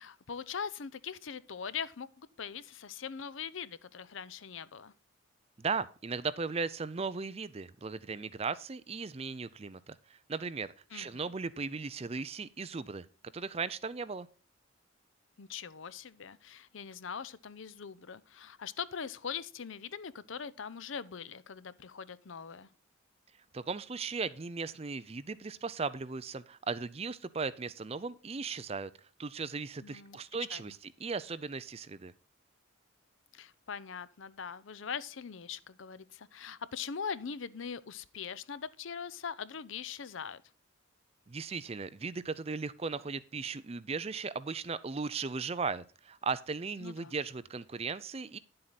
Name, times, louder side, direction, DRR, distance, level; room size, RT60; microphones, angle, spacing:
voice 1, 0.0-4.9 10.9-11.2 15.4-22.7 29.8-30.2 30.5-30.7 33.3-40.4 46.8-47.1, left 6 dB, 70° left, 0.6 m, -42 dB
voice 2, 5.6-13.1 13.3-14.3 23.5-28.9 29.2-32.1 41.3-48.4, right 4 dB, 30° right, 0.5 m, -37 dB
10.0 x 7.7 x 4.0 m
head